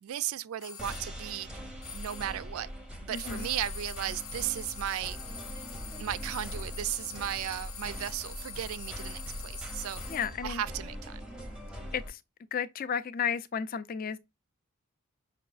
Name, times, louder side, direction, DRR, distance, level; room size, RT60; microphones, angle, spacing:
voice 1, 0.0-1.5 1.9-2.7 3.0-5.4 6.0-10.0 10.4-11.2, right 11 dB, 70° right, 0.3 m, -35 dB
sound 1, 0.6-1.1 1.8-2.5 3.1-10.5, left 7 dB, 60° left, 0.7 m, -45 dB
sound 2, 0.8-12.1, equal, 5° right, 0.6 m, -42 dB
voice 2, 3.1-3.5 10.1-10.6 11.9-12.2 12.5-14.2, left 7 dB, 40° left, 0.3 m, -33 dB
5.7 x 2.3 x 2.4 m
head